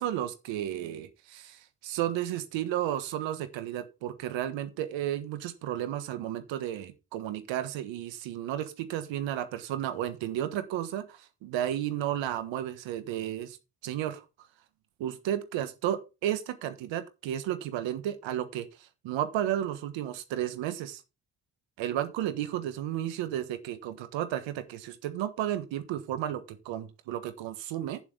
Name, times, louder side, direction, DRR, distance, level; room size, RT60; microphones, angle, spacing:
voice 1, 0.0-13.6 13.8-14.2 15.0-21.0 21.8-28.0, right 11 dB, 90° right, 1.5 m, -33 dB
9.1 x 7.6 x 5.1 m
supercardioid pair, 55°, 43 cm